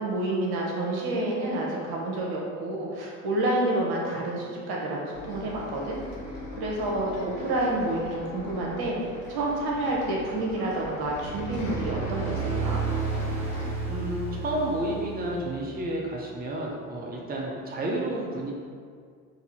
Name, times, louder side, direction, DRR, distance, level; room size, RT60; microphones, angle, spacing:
voice 1, 0.0-6.0 6.6-12.8, right 1 dB, 60° right, -3 dB, 1.1 m, -29 dB
Bus, 5.1-13.7, left 1 dB, 65° left, 1.0 m, -40 dB
sound 1, 11.1-15.8, right 4 dB, 5° left, 1.3 m, -32 dB
voice 2, 13.6-18.5, right 1 dB, 20° right, -2 dB, 0.8 m, -31 dB
4.0 x 2.8 x 4.2 m, 2.1 s
hypercardioid pair, 55°, 43 cm